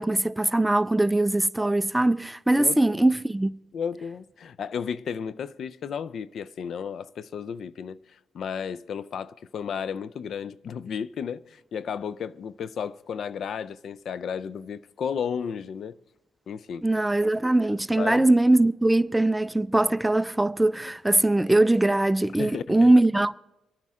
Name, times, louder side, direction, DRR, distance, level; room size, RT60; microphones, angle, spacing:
voice 1, 0.0-3.5 16.8-23.3, right 2 dB, 10° right, 0.4 m, -21 dB
voice 2, 2.6-3.0 3.7-16.0 16.5-17.0 18.0-18.3 22.4-22.8, left 7 dB, 60° left, 0.4 m, -33 dB
25.5 x 9.2 x 3.6 m
cardioid pair, 90°, 0 cm